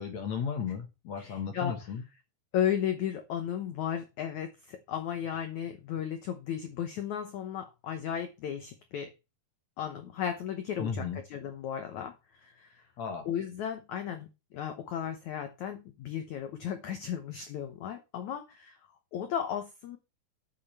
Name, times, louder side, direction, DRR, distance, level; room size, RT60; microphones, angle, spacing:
voice 1, 0.0-2.0 10.8-11.2 13.0-13.3, left 6 dB, 60° left, 5 dB, 2.1 m, -34 dB
voice 2, 1.2-1.8 2.5-9.1 9.8-12.1 12.4-12.8 13.2-14.3 14.5-18.8 19.1-20.0, left 9 dB, 85° left, 7 dB, 1.6 m, -35 dB
8.8 x 8.4 x 4.2 m, 0.26 s
omnidirectional pair, 4.9 m